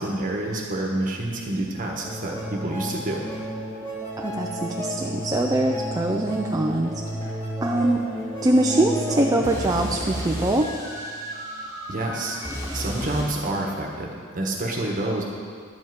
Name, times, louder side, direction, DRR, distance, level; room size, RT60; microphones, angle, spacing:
voice 1, 0.0-3.2 11.9-12.4 12.7-14.1 14.3-15.2, right 1 dB, 40° right, -1 dB, 1.3 m, -28 dB
sound 1, 2.0-13.3, equal, 15° left, 3.0 m, -32 dB
voice 2, 4.2-8.0 8.4-10.7, right 1 dB, 15° right, 1 dB, 0.5 m, -23 dB
11.5 x 5.5 x 7.9 m, 2.1 s
head